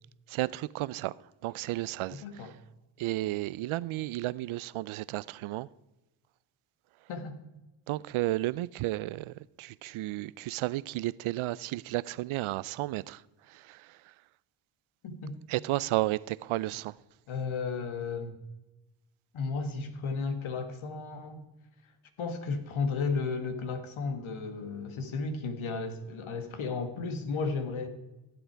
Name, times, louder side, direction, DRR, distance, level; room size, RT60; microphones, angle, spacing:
voice 1, 0.3-1.1 1.4-2.5 3.0-5.7 7.9-13.2 13.5-14.0 15.5-16.9, right 17 dB, 75° right, 0.5 m, -33 dB
voice 2, 2.1-2.5 7.1-7.4 15.0-15.4 17.3-18.4 19.3-21.4 22.2-27.9, left 4 dB, 70° left, 1.8 m, -34 dB
15.0 x 8.0 x 4.6 m
cardioid pair, 65°, 49 cm